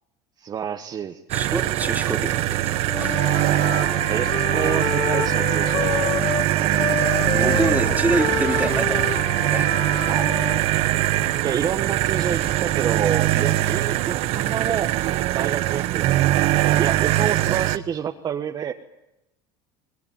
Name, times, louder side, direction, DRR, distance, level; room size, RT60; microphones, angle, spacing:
voice 1, 0.4-1.2 4.1-6.8 10.1-10.3 11.4-14.9 15.3-18.7, right 8 dB, 40° right, 4 dB, 1.4 m, -29 dB
voice 2, 1.3-3.1 6.5-6.8 7.3-10.1 13.3-13.5, right 3 dB, 15° right, 4 dB, 3.1 m, -27 dB
sound 1, 1.3-17.8, right 15 dB, 60° right, 1.2 m, -22 dB
Wind instrument woodwind instrument, 2.8-6.5 6.8-10.6, left 7 dB, 45° left, 2.0 m, -29 dB
Thunder, 5.2-11.5 12.5-12.8, left 6 dB, 70° left, 4.2 m, -39 dB
25.0 x 20.0 x 9.5 m, 0.93 s
supercardioid pair, 105°, 11 cm